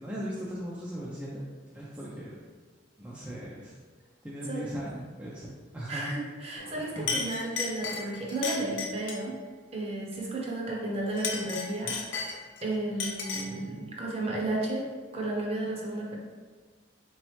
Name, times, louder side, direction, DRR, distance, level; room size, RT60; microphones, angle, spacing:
voice 1, 0.0-1.4 1.7-2.4 3.0-3.8 4.2-6.2 7.0-7.2, equal, 10° right, -7 dB, 0.4 m, -38 dB
voice 2, 5.9-9.4 9.7-12.3 12.6-14.9 15.1-16.2, right 2 dB, 30° right, -3 dB, 0.7 m, -33 dB
Chink clink, 6.6-6.8 7.1-9.3 11.1-12.6 13.0-13.6, left 5 dB, 80° left, 0.6 m, -34 dB
4.0 x 3.1 x 3.1 m, 1.5 s
head